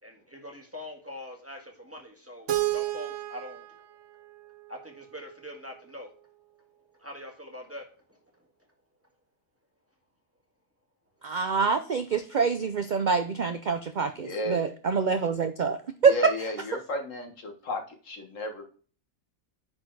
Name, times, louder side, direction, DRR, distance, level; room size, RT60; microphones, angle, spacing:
voice 1, 0.0-3.6 4.7-6.1 7.0-8.2, left 1 dB, 10° right, 1.8 m, -43 dB
Keyboard (musical), 2.5-5.4, right 15 dB, 65° right, 1.1 m, -33 dB
voice 2, 11.2-15.8 16.0-16.1, right 5 dB, 50° right, 0.5 m, -26 dB
voice 3, 14.1-14.7 16.0-18.6, left 2 dB, 70° left, 1.8 m, -34 dB
9.8 x 4.2 x 4.6 m
omnidirectional pair, 1.4 m